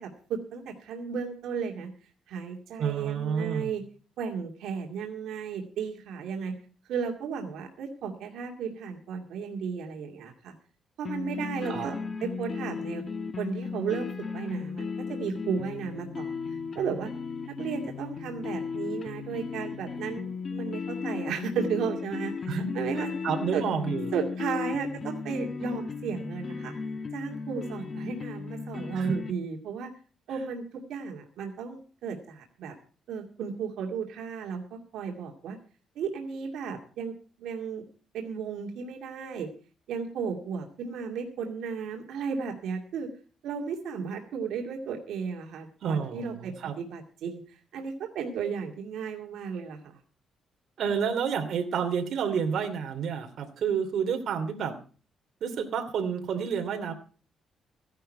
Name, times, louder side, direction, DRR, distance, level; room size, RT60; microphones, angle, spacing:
voice 1, 0.0-1.9 2.3-3.8 4.2-6.5 6.9-10.5 11.0-13.0 13.4-14.8 15.1-17.1 17.5-23.1 23.5-23.6 24.1-26.7 27.1-29.9 30.3-32.7 33.1-35.6 36.0-37.8 38.1-39.5 39.9-43.1 43.4-50.0, right 6 dB, 85° right, 1 dB, 2.3 m, -34 dB
voice 2, 2.8-3.7 11.7-11.9 22.5-22.7 23.2-24.1 28.9-29.1 45.8-46.8 50.8-54.8 55.4-56.9, right 7 dB, 70° right, 5 dB, 2.8 m, -29 dB
sound 1, 11.1-29.3, left 5 dB, 40° left, 1.4 m, -35 dB
16.0 x 11.5 x 4.4 m, 0.39 s
cardioid pair, 120°, 0 cm